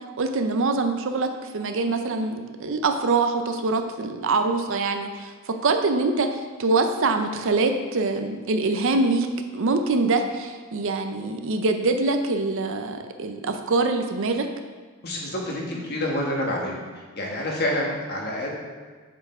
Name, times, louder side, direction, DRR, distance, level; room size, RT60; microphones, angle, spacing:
voice 1, 0.2-9.3 9.5-14.5, right 3 dB, 60° right, 6 dB, 0.5 m, -24 dB
voice 2, 15.0-16.8 17.2-18.5, left 1 dB, 50° left, -2 dB, 1.4 m, -27 dB
7.0 x 4.5 x 4.3 m, 1.5 s
head